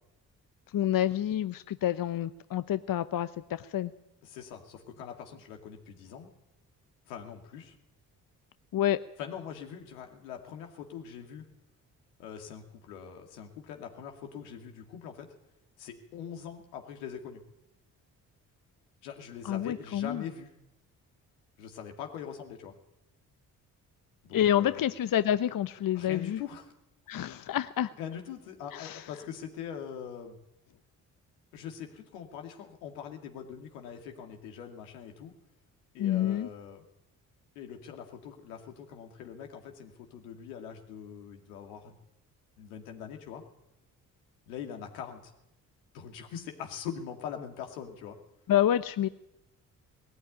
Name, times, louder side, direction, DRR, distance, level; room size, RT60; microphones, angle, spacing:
voice 1, 0.7-3.9 8.7-9.0 19.4-20.2 24.3-26.4 27.1-27.9 28.7-29.0 36.0-36.5 48.5-49.1, left 11 dB, 50° left, 13 dB, 0.9 m, -28 dB
voice 2, 4.2-6.3 7.1-7.8 9.2-11.5 12.2-15.3 15.8-17.4 19.0-20.5 21.6-22.7 24.2-24.8 25.9-26.7 28.0-30.4 31.5-35.3 35.9-36.8 37.6-42.0 42.6-43.4 44.5-45.3 45.9-48.2, left 8 dB, 85° left, 3 dB, 2.5 m, -42 dB
20.0 x 14.0 x 9.3 m, 0.87 s
hypercardioid pair, 40°, 44 cm